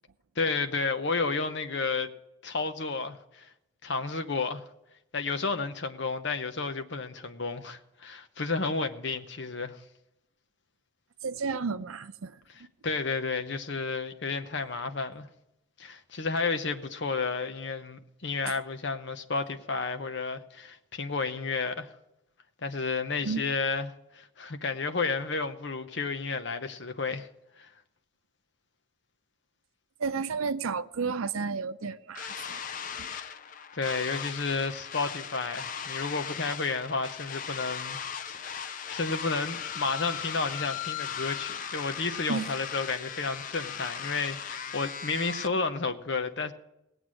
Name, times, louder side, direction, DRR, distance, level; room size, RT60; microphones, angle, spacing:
voice 1, 0.4-2.1 2.4-3.5 3.8-4.6 5.1-9.8 12.5-15.3 15.8-21.9 22.6-27.3 27.6-27.7 33.1-33.4 33.7-38.0 38.3-46.5, left 4 dB, 55° left, 0.8 m, -32 dB
voice 2, 11.2-12.4 23.2-23.5 30.0-32.3 33.0-33.1 42.3-42.4, right 5 dB, 90° right, 0.6 m, -32 dB
sound 1, 32.1-45.5, left 7 dB, 40° left, 0.4 m, -38 dB
18.5 x 8.0 x 6.2 m
head